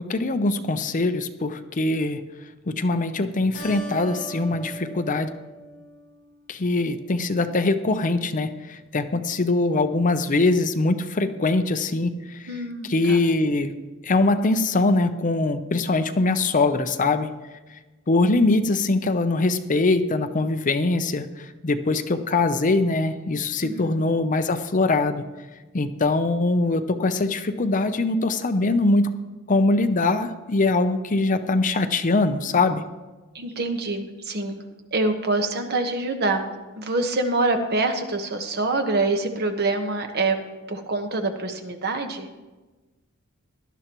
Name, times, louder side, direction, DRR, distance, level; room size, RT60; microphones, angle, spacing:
voice 1, 0.1-2.2 2.7-5.3 6.5-12.5 12.9-13.7 14.0-17.3 18.1-25.2 25.7-29.1 29.5-32.8, left 2 dB, 40° left, 9 dB, 0.6 m, -22 dB
Keyboard (musical), 3.5-6.4, right 2 dB, 60° left, 3.2 m, -39 dB
voice 2, 12.5-13.2 23.6-24.1 33.3-34.6 34.9-40.4 40.7-42.3, right 2 dB, 50° right, 5 dB, 1.2 m, -25 dB
18.0 x 12.0 x 3.0 m, 1.2 s
head